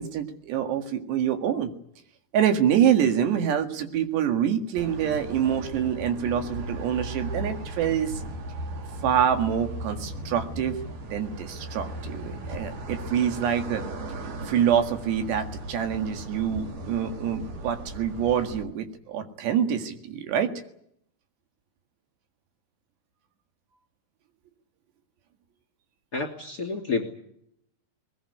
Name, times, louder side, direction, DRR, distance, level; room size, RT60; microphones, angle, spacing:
voice 1, 0.0-1.7 2.3-8.2 9.0-10.8 11.1-13.8 14.5-20.5, right 9 dB, 70° right, 7 dB, 3.9 m, -26 dB
sound 1, 4.8-18.6, right 1 dB, 50° right, 4.4 m, -37 dB
voice 2, 26.1-27.1, left 4 dB, 25° left, 5 dB, 2.7 m, -29 dB
21.0 x 21.0 x 9.8 m, 0.72 s
omnidirectional pair, 5.2 m